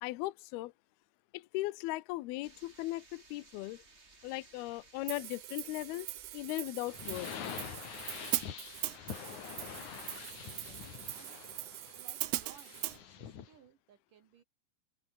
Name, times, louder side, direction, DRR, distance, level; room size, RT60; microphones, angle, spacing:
voice 1, 0.0-0.7 1.3-3.8 4.2-7.3, left 18 dB, 85° left, 2.2 m, -38 dB
sound 1, 2.4-10.8, right 3 dB, 25° right, 1.6 m, -60 dB
Hi-hat, 5.1-13.0, right 19 dB, 80° right, 2.4 m, -40 dB
sound 2, 6.9-13.5, left 9 dB, 50° left, 2.7 m, -46 dB
voice 2, 10.4-11.4 12.0-14.4, right 8 dB, 65° right, 2.2 m, -61 dB
open air
omnidirectional pair, 5.7 m